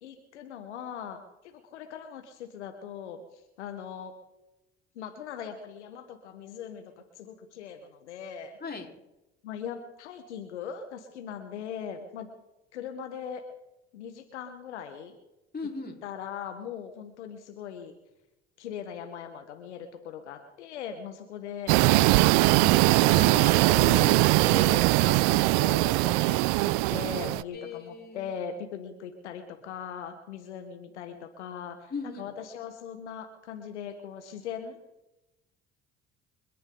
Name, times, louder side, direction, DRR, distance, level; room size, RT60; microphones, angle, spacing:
voice 1, 0.0-4.1 4.9-8.6 9.4-12.3 12.7-13.4 13.9-15.2 16.0-17.9 18.6-23.7 24.1-34.8, left 8 dB, 90° left, 7 dB, 1.5 m, -40 dB
voice 2, 15.5-15.9 23.7-24.3 27.5-28.3 31.9-32.2, left 4 dB, 25° left, 1 dB, 4.4 m, -37 dB
sound 1, 21.7-27.4, right 22 dB, 70° right, 0.5 m, -21 dB
29.5 x 10.0 x 3.9 m, 0.95 s
hypercardioid pair, 60°, 34 cm